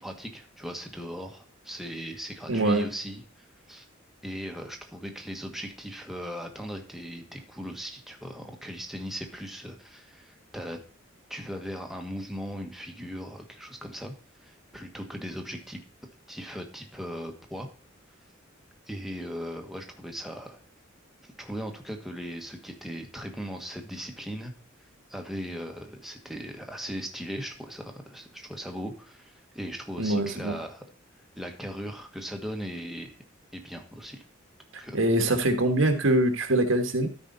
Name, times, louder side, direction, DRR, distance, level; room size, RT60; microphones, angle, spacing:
voice 1, 0.0-3.9 4.2-10.8 11.3-14.1 14.4-15.8 16.3-17.7 18.9-20.6 21.4-24.5 25.1-30.8 31.3-33.2 33.5-34.2 34.8-35.0, equal, ahead, 2 dB, 1.4 m, -38 dB
voice 2, 2.5-2.8 30.0-30.5 34.9-37.1, right 1 dB, 80° right, 6 dB, 1.6 m, -23 dB
13.0 x 5.0 x 4.0 m, 0.42 s
head